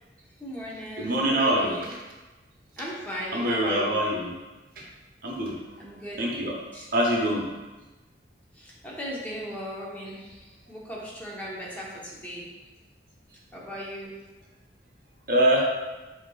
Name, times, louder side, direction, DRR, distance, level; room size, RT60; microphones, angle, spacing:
voice 1, 0.4-1.9 2.8-4.0 5.8-6.9 8.5-12.5 13.5-14.1, equal, 10° left, -6 dB, 0.9 m, -37 dB
voice 2, 1.0-1.7 3.3-4.3 4.8-4.9 5.2-5.5 6.2-6.6 6.9-7.4 15.3-15.7, right 1 dB, 50° right, -1 dB, 0.9 m, -24 dB
7.9 x 2.9 x 2.3 m, 1.1 s
head